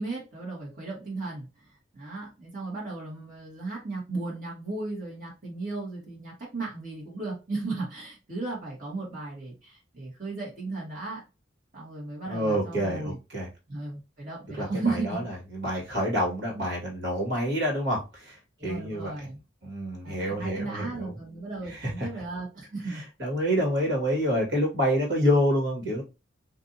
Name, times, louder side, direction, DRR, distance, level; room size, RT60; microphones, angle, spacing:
voice 1, 0.0-1.5 1.9-11.2 11.7-13.2 13.7-15.3 18.6-19.4 20.0-23.0, right 3 dB, 45° right, -5 dB, 2.0 m, -35 dB
voice 2, 12.3-13.5 14.6-19.1 19.6-21.1 21.7-22.1 23.2-26.0, equal, 65° right, -3 dB, 2.2 m, -27 dB
5.1 x 2.7 x 2.8 m, 0.28 s
head